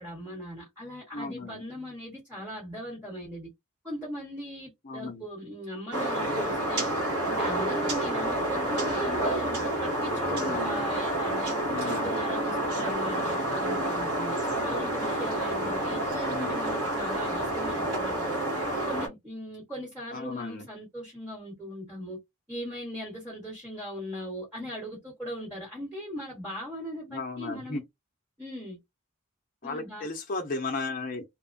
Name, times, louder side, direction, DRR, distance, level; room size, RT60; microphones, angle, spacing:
voice 1, 0.0-3.5 3.8-6.9 7.2-11.6 11.8-18.4 18.8-22.2 22.5-27.8 28.4-28.8 29.6-30.1, equal, 10° right, 1.1 m, -39 dB
voice 2, 1.1-1.6 4.8-5.2 10.2-10.8 11.7-12.1 16.3-16.6 20.1-20.7 27.1-27.8 29.6-31.2, left 3 dB, 40° left, 0.5 m, -35 dB
sound 1, 5.9-19.1, right 1 dB, 85° right, 1.2 m, -29 dB
3.0 x 2.1 x 2.5 m
head